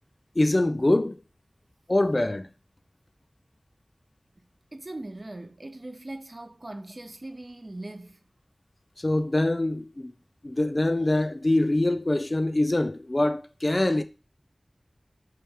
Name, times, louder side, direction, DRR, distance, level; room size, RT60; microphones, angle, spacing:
voice 1, 0.4-1.2 1.9-2.5 9.0-10.1 10.4-14.0, left 1 dB, 40° left, 0.3 m, -24 dB
voice 2, 4.7-8.2, right 2 dB, 45° right, 0.5 m, -40 dB
4.4 x 2.3 x 3.3 m
wide cardioid pair, 60°, 0 cm